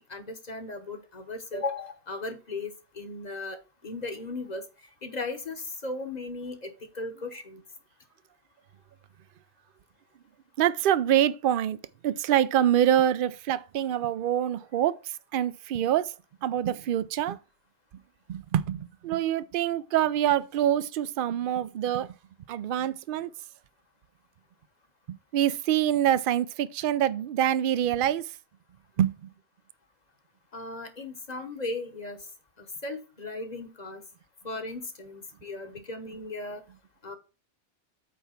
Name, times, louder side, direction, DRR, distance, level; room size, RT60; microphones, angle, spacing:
voice 1, 0.1-3.6 3.8-4.6 5.0-7.6 21.9-22.0 30.5-32.2 32.8-34.0 34.4-36.6 37.0-37.2, left 2 dB, 40° left, 1.1 m, -36 dB
voice 2, 10.6-11.8 12.0-16.1 16.4-17.4 18.3-22.1 22.5-23.3 25.1-28.3 29.0-29.3, right 11 dB, 60° right, 0.6 m, -25 dB
8.6 x 3.4 x 5.7 m
omnidirectional pair, 1.2 m